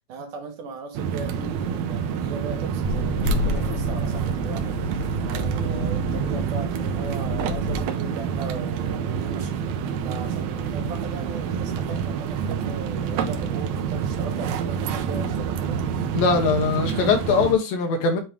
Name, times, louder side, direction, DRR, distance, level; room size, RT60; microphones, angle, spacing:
voice 1, 0.1-9.7 10.0-15.8, right 4 dB, 65° right, 2.7 m, -37 dB
sound 1, 0.9-17.5, right 7 dB, 85° right, 1.6 m, -27 dB
sound 2, 2.8-7.8, left 2 dB, 55° left, 1.1 m, -30 dB
voice 2, 16.1-18.2, left 5 dB, 80° left, 2.9 m, -21 dB
8.9 x 3.0 x 3.5 m
omnidirectional pair, 4.2 m